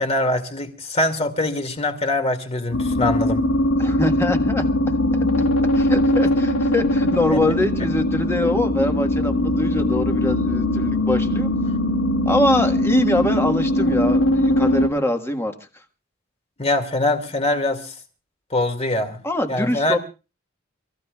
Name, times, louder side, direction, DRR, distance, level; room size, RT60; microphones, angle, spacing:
voice 1, 0.0-3.4 7.3-7.5 16.6-17.9 18.5-19.2 19.5-20.0, left 2 dB, 30° left, 2.2 m, -23 dB
sound 1, 2.7-14.9, left 1 dB, 85° left, 2.1 m, -20 dB
voice 2, 3.8-4.6 5.7-11.5 12.2-15.5 19.2-20.0, left 1 dB, 10° left, 1.5 m, -23 dB
29.5 x 15.0 x 2.4 m
head